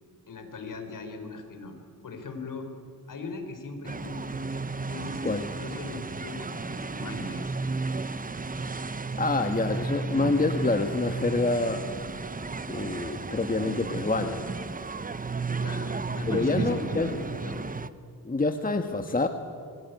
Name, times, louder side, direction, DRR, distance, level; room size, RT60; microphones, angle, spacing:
voice 1, 0.3-1.8 2.0-2.7 3.1-4.3 4.8-7.6 15.6-17.6, left 3 dB, 60° left, 5 dB, 4.5 m, -39 dB
sound 1, 3.8-17.9, right 3 dB, 25° right, 0.9 m, -33 dB
voice 2, 9.2-11.9 12.7-14.5 16.3-17.1 18.2-19.3, left 3 dB, 25° left, 6 dB, 1.6 m, -27 dB
26.5 x 22.0 x 9.5 m, 2.2 s
cardioid pair, 95°, 36 cm